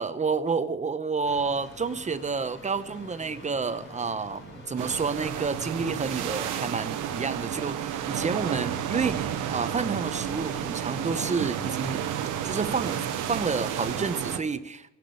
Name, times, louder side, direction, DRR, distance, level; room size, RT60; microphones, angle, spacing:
voice 1, 0.0-12.1 12.4-13.0 13.3-14.9, right 4 dB, 25° right, 13 dB, 0.8 m, -30 dB
sound 1, 1.2-6.2, left 2 dB, 40° left, 3.3 m, -47 dB
sound 2, 4.8-14.4, right 9 dB, 85° right, 1.1 m, -31 dB
17.5 x 6.1 x 8.8 m, 0.98 s
cardioid pair, 90°, 30 cm